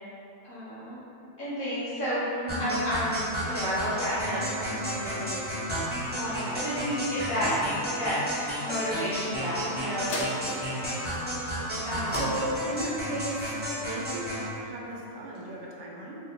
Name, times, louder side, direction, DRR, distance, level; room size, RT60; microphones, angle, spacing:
voice 1, 0.4-1.0 1.4-5.5 6.1-8.2 8.6-10.3 11.8-12.2, equal, 50° left, -14 dB, 1.6 m, -31 dB
sound 1, 2.5-14.5, equal, 10° right, 0.6 m, -32 dB
sound 2, 10.1-14.9 15.3-15.4, equal, 75° left, 0.9 m, -40 dB
voice 2, 12.2-13.5 13.8-16.2, right 1 dB, 80° right, -2 dB, 0.9 m, -35 dB
4.2 x 2.1 x 3.7 m, 2.9 s
omnidirectional pair, 1.2 m